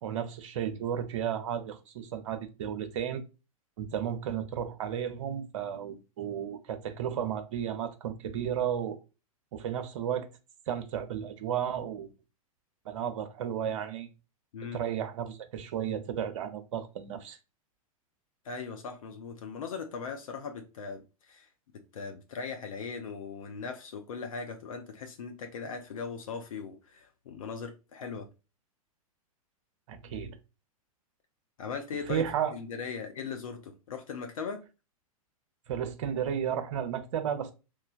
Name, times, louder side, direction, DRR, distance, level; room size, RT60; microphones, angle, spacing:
voice 1, 0.0-3.2 3.8-9.0 9.5-10.3 10.7-12.1 12.9-14.1 14.7-17.4 29.9-30.4 32.1-32.5 35.7-37.5, right 9 dB, 60° right, 0.6 m, -33 dB
voice 2, 18.4-21.5 21.9-28.3 31.6-32.2 32.5-34.6, left 5 dB, 70° left, 0.6 m, -39 dB
3.1 x 2.2 x 2.3 m
figure-of-eight pair, 100°, 19 cm